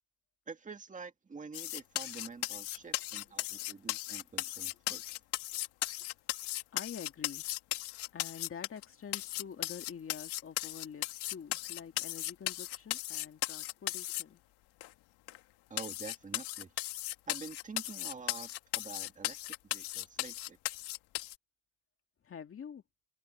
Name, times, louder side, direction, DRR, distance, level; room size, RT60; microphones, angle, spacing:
voice 1, 0.5-5.0 15.7-16.7 17.3-20.6, right 4 dB, 20° right, 2.0 m, -47 dB
sound 1, 1.5-8.8 9.1-14.2 14.8-14.9 15.3-15.4 15.8-21.4, left 17 dB, 85° left, 1.9 m, -37 dB
voice 2, 6.7-7.5 8.1-14.4 22.2-22.8, left 7 dB, 35° left, 2.2 m, -47 dB
cardioid pair, 135°, 38 cm